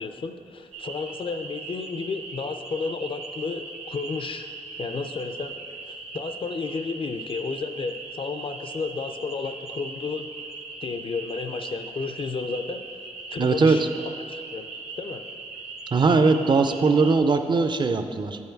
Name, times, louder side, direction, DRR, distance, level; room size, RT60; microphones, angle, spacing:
voice 1, 0.0-5.6 5.9-10.3 10.8-12.8 13.3-13.9 14.3-14.7 15.0-15.2, left 4 dB, 45° left, 8 dB, 0.4 m, -32 dB
sound 1, 0.7-17.2, right 3 dB, 60° right, 0.8 m, -39 dB
voice 2, 13.4-13.9 15.9-18.4, right 4 dB, 40° right, 8 dB, 0.4 m, -20 dB
8.2 x 5.5 x 4.5 m, 2.4 s
wide cardioid pair, 110°, 13 cm